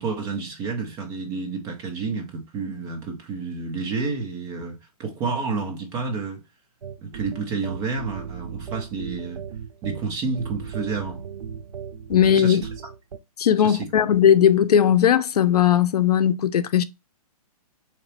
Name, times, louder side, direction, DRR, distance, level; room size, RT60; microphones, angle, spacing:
voice 1, 0.0-6.4 7.0-9.4 9.8-11.2 12.3-12.7 13.6-13.9, right 4 dB, 15° right, 0.6 m, -30 dB
sound 1, 6.8-13.2, right 7 dB, 90° right, 0.6 m, -37 dB
voice 2, 12.1-12.6 13.4-16.8, left 9 dB, 80° left, 0.5 m, -18 dB
3.9 x 2.9 x 3.2 m
hypercardioid pair, 170°, 20 cm